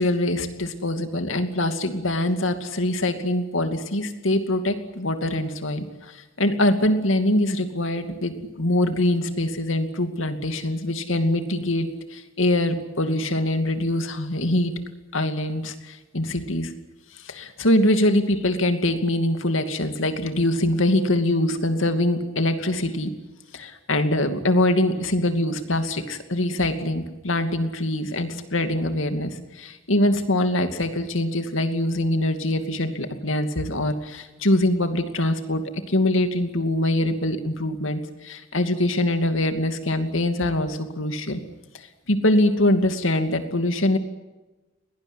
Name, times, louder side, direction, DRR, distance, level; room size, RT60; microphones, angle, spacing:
voice 1, 0.0-14.7 15.1-16.7 17.1-23.1 23.5-35.6 35.9-41.4 41.7-44.0, left 1 dB, 75° left, 7 dB, 2.6 m, -23 dB
22.0 x 19.0 x 9.9 m, 1.1 s
head